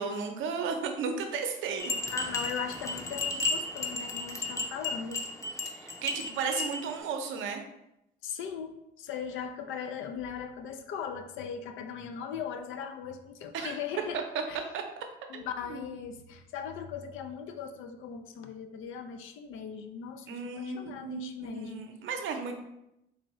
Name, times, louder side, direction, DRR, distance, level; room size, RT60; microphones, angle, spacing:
voice 1, 0.0-1.9 5.7-7.6 13.5-13.8 14.7-14.8 15.3-15.8 20.3-22.5, right 5 dB, 80° right, 5 dB, 0.6 m, -34 dB
sound 1, 1.8-6.9, left 2 dB, 15° left, 0.5 m, -34 dB
voice 2, 2.1-5.2 8.2-14.2 14.5-14.6 15.3-21.9 22.3-22.4, left 7 dB, 80° left, 7 dB, 0.4 m, -39 dB
4.0 x 2.6 x 3.0 m, 0.84 s
cardioid pair, 90°, 20 cm